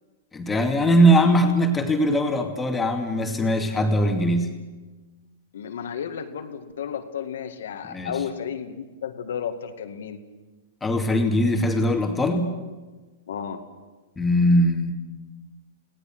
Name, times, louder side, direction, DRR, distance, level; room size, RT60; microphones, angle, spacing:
voice 1, 0.3-4.6 7.8-8.2 10.8-12.6 14.2-14.9, equal, 10° left, 3 dB, 2.5 m, -21 dB
voice 2, 5.5-10.2 13.3-13.6, left 8 dB, 75° left, 7 dB, 2.1 m, -33 dB
30.0 x 18.0 x 6.2 m, 1.3 s
hypercardioid pair, 130°, 0 cm